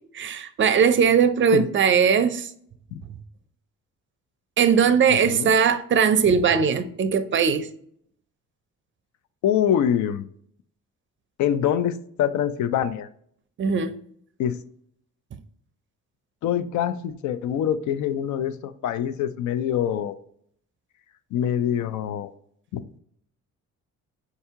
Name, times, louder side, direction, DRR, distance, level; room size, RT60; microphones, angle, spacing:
voice 1, 0.1-2.5 4.6-7.7 13.6-13.9, right 6 dB, 40° right, 0.4 m, -20 dB
voice 2, 5.1-5.5 9.4-10.3 11.4-13.1 14.4-14.6 16.4-20.2 21.3-22.3 22.7-22.8, left 9 dB, 75° left, 0.5 m, -25 dB
4.7 x 2.7 x 3.5 m
cardioid pair, 90°, 30 cm